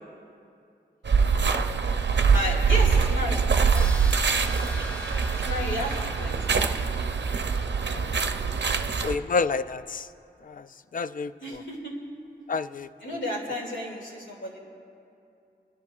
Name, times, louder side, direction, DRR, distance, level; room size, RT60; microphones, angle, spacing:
sound 1, 1.1-9.1, right 5 dB, 70° right, 0.6 m, -24 dB
voice 1, 2.3-3.5 5.3-6.6 8.7-8.9 9.2-9.3 11.4-11.9 13.0-14.6, left 1 dB, 90° left, -3 dB, 2.4 m, -33 dB
sound 2, 3.7-9.5, equal, 5° left, 1.6 m, -42 dB
voice 2, 9.0-10.1 10.5-10.6 10.9-11.6 12.5-12.9, left 4 dB, 50° left, 13 dB, 0.4 m, -28 dB
29.5 x 11.0 x 2.4 m, 2.5 s
wide cardioid pair, 55°, 19 cm